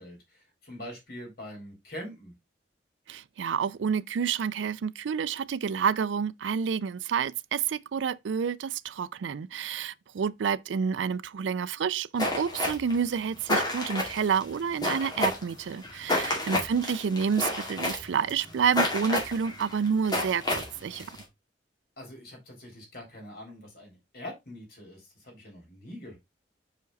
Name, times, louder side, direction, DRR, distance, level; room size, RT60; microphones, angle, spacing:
voice 1, 0.0-2.3 16.2-16.6 22.0-26.2, left 1 dB, 55° left, 3.6 m, -44 dB
voice 2, 3.1-21.1, right 6 dB, 80° right, 0.4 m, -29 dB
sound 1, 12.2-21.2, left 1 dB, 20° left, 2.1 m, -30 dB
5.1 x 5.0 x 3.9 m
head